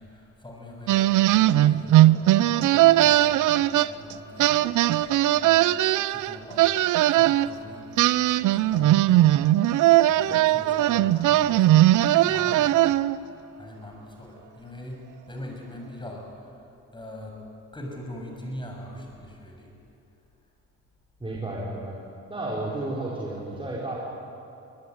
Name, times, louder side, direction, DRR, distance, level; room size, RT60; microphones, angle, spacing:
voice 1, 0.0-11.9 12.2-13.0 13.5-16.7 16.9-17.4 17.7-19.7, left 1 dB, 15° left, 1 dB, 7.0 m, -42 dB
sound 1, 0.9-4.1 4.4-7.5 8.0-13.2, right 14 dB, 80° right, 0.7 m, -19 dB
voice 2, 21.2-22.0 22.3-24.0, right 2 dB, 20° right, -5 dB, 5.0 m, -32 dB
24.5 x 19.5 x 9.5 m, 2.8 s
cardioid pair, 90°, 30 cm